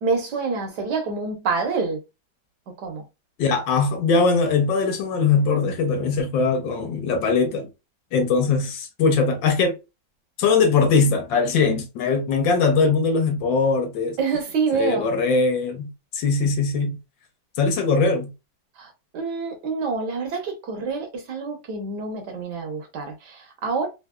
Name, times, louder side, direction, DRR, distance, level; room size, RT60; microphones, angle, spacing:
voice 1, 0.0-2.0 2.8-3.0 14.2-15.1 18.8-23.9, right 4 dB, 65° right, 1.3 m, -27 dB
voice 2, 3.4-7.7 8.1-9.8 10.4-14.2 14.7-17.0 17.6-18.3, left 4 dB, 70° left, 1.4 m, -21 dB
3.5 x 2.7 x 2.2 m
omnidirectional pair, 2.2 m